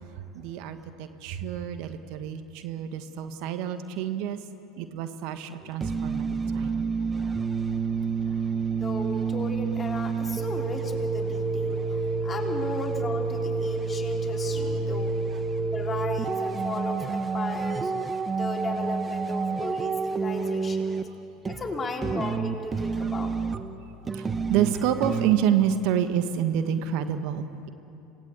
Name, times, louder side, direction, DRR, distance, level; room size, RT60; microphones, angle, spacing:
voice 1, 0.1-4.4 4.8-6.8 12.1-12.2 15.3-15.4 20.4-20.5 23.0-23.1 24.1-27.7, right 9 dB, 60° right, 9 dB, 1.5 m, -28 dB
sound 1, 5.6-25.4, right 4 dB, 20° right, 1.4 m, -29 dB
voice 2, 8.7-11.8 12.2-15.2 15.7-17.9 18.3-21.0 21.5-23.4, left 2 dB, 25° left, 2 dB, 3.6 m, -35 dB
27.5 x 18.0 x 8.3 m, 2.7 s
hypercardioid pair, 75°, 0 cm